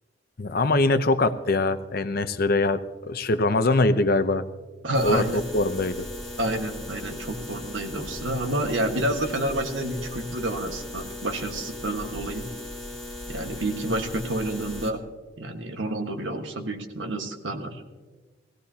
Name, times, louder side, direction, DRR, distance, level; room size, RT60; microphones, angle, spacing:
voice 1, 0.4-4.4 5.0-6.1, left 2 dB, 55° left, 11 dB, 0.7 m, -23 dB
voice 2, 4.8-5.4 6.4-12.4 13.3-15.0 15.4-17.8, right 1 dB, 90° right, 5 dB, 1.5 m, -29 dB
sound 1, 4.9-14.9, left 1 dB, ahead, 2.1 m, -38 dB
18.5 x 16.5 x 2.8 m, 1.3 s
head